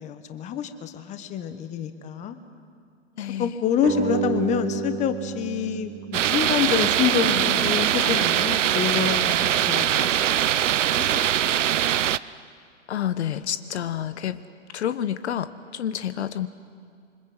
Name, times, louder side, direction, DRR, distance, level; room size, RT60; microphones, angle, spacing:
voice 1, 0.0-2.4 3.4-10.1 10.4-10.5 11.0-11.1 11.5-11.6, left 8 dB, 20° left, 9 dB, 1.4 m, -27 dB
voice 2, 3.2-3.5 12.9-14.4 14.7-16.5, left 10 dB, 60° left, 13 dB, 1.2 m, -29 dB
sound 1, 3.8-7.0, right 6 dB, 20° right, 2.9 m, -30 dB
sound 2, 6.1-12.2, right 11 dB, 75° right, 0.8 m, -22 dB
27.0 x 25.0 x 8.0 m, 2.3 s
hypercardioid pair, 140°, 38 cm